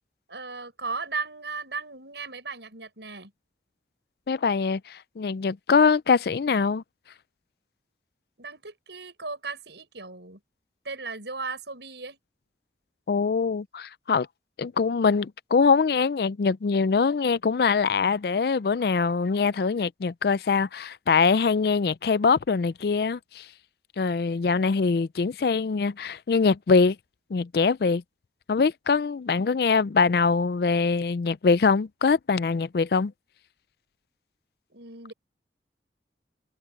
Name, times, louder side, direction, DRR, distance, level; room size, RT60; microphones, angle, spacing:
voice 1, 0.3-3.3 8.4-10.4 10.8-12.2 34.7-35.1, right 4 dB, 80° right, 6.7 m, -36 dB
voice 2, 4.3-6.8 13.1-14.3 14.6-23.5 24.0-27.0 27.3-28.0 28.5-33.1, left 5 dB, 60° left, 0.4 m, -23 dB
head